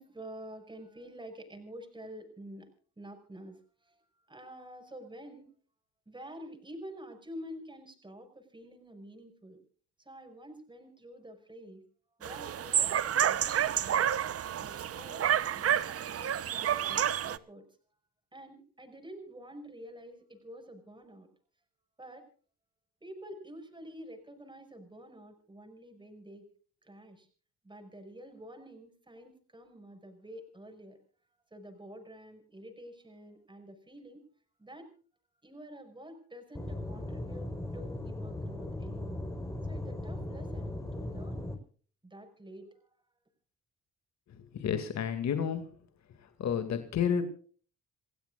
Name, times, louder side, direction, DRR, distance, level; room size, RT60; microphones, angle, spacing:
voice 1, 0.0-2.7 3.0-4.0 4.3-5.5 6.1-9.6 10.0-11.8 12.2-14.1 14.6-15.2 15.5-17.7 18.3-21.3 22.0-22.3 23.0-26.5 26.8-27.3 27.6-31.0 31.5-34.2 34.6-34.9 35.4-39.2 39.7-41.5 42.0-42.9, equal, 15° right, 5 dB, 5.8 m, -48 dB
sound 1, 12.2-17.4, right 9 dB, 50° right, 0.9 m, -29 dB
Aircraft / Engine, 36.5-41.5, left 1 dB, 10° left, 4.4 m, -38 dB
voice 2, 44.4-45.7 46.4-47.2, left 8 dB, 65° left, 8 dB, 2.3 m, -30 dB
28.5 x 16.0 x 2.5 m, 0.43 s
cardioid pair, 90°, 30 cm